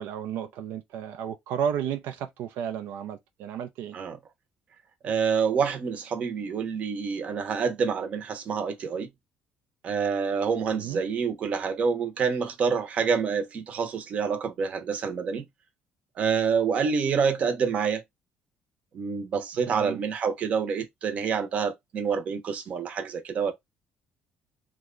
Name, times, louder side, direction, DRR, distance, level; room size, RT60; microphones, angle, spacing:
voice 1, 0.0-4.0 10.7-11.0 19.7-20.0, right 8 dB, 85° right, 0.5 m, -33 dB
voice 2, 5.0-9.1 9.8-15.4 16.2-18.0 18.9-23.5, right 6 dB, 40° right, 0.8 m, -27 dB
3.0 x 2.2 x 3.7 m
cardioid pair, 165°, 3 cm